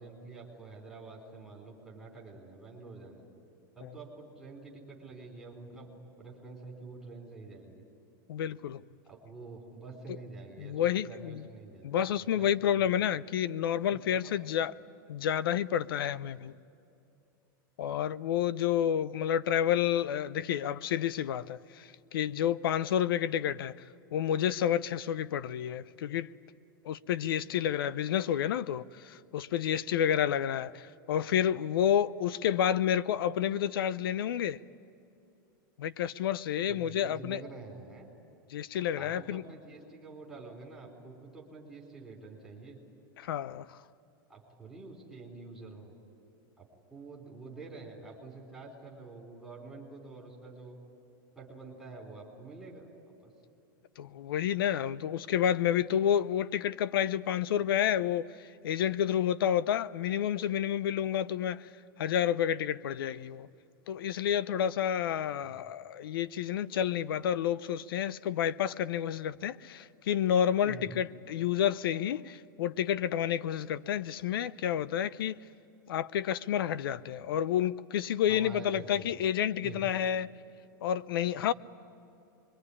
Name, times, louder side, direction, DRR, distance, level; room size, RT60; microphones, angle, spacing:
voice 1, 0.0-3.3 3.7-7.8 9.0-13.0 13.9-14.3 14.8-14.9 36.7-38.1 39.0-42.8 44.3-45.9 46.6-50.8 51.4-53.0 53.2-53.3 65.4-65.6 70.6-70.9 78.3-79.3 79.6-79.9 81.3-81.5, right 3 dB, ahead, 4.2 m, -48 dB
voice 2, 8.3-8.8 10.6-11.4 11.8-14.7 15.1-16.5 17.8-23.7 24.1-26.3 26.8-34.6 35.8-37.4 38.5-39.4 43.2-43.7 54.0-58.3 58.6-61.6 62.0-63.5 63.9-75.3 75.9-80.3 80.8-81.5, left 10 dB, 80° left, 0.7 m, -30 dB
26.0 x 22.5 x 9.8 m
supercardioid pair, 170°, 12 cm